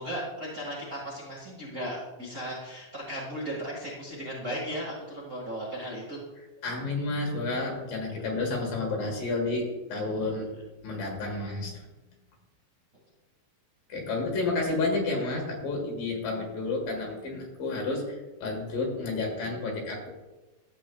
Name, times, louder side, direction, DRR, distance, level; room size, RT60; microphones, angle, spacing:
voice 1, 0.0-6.2, equal, 35° right, -6 dB, 1.4 m, -36 dB
voice 2, 6.6-10.5 10.8-11.9 13.9-20.1, left 3 dB, 70° left, 0 dB, 3.1 m, -30 dB
13.0 x 7.9 x 2.3 m, 1.1 s
omnidirectional pair, 4.3 m